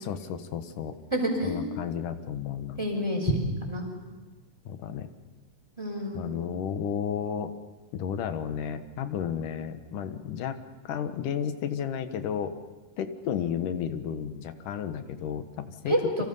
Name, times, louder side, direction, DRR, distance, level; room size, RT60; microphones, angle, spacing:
voice 1, 0.0-0.9 1.4-2.8 4.7-5.1 6.1-7.5 7.9-10.6 10.8-12.5 13.0-16.0, left 8 dB, 80° left, 9 dB, 2.8 m, -32 dB
voice 2, 1.1-1.7 2.8-3.4 3.7-3.8 5.8-6.2 15.9-16.2, equal, 10° right, 0 dB, 5.5 m, -28 dB
29.5 x 25.5 x 5.5 m, 1.2 s
omnidirectional pair, 3.6 m